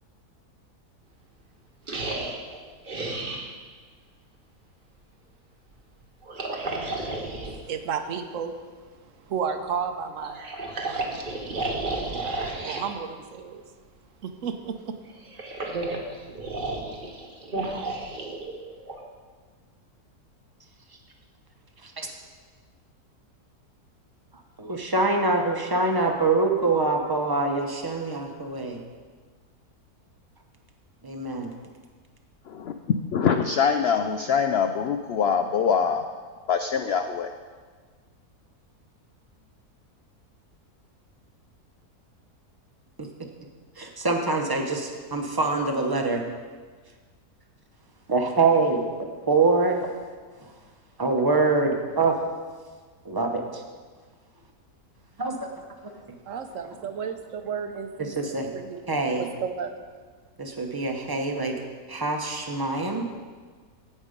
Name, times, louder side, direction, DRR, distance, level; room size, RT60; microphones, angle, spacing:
Alien-Monster Vocal Sounds, 1.9-3.5 6.2-7.6 10.2-12.9 15.1-19.0, right 2 dB, 35° right, 1.2 m, -32 dB
voice 1, 7.5-8.7 9.3-10.4 10.8-11.2 12.6-13.6 14.2-15.0 56.3-58.8 59.2-59.7, right 6 dB, 60° right, 8 dB, 1.0 m, -33 dB
voice 2, 24.6-28.8 31.0-31.5 43.0-43.1 43.8-46.2 48.1-49.9 51.0-52.2 53.0-53.6 55.2-55.4 58.1-58.5 58.9-59.2 60.4-61.6 61.9-63.1, right 3 dB, 20° right, 3 dB, 0.7 m, -24 dB
voice 3, 33.1-36.1 36.5-37.3, left 6 dB, 85° left, 7 dB, 0.5 m, -24 dB
16.0 x 5.5 x 5.1 m, 1.5 s
omnidirectional pair, 1.6 m